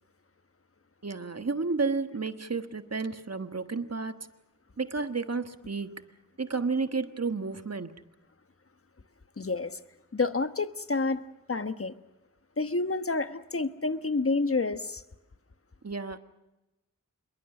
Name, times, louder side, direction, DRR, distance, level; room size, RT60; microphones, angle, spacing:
voice 1, 1.0-4.2 4.8-6.0 6.4-8.0 15.8-16.2, right 4 dB, 50° right, 9 dB, 1.4 m, -31 dB
voice 2, 9.4-9.8 10.1-11.2 11.5-11.9 12.6-15.0, left 3 dB, 40° left, 10 dB, 1.2 m, -29 dB
26.5 x 22.0 x 6.1 m, 1.0 s
wide cardioid pair, 60°, 33 cm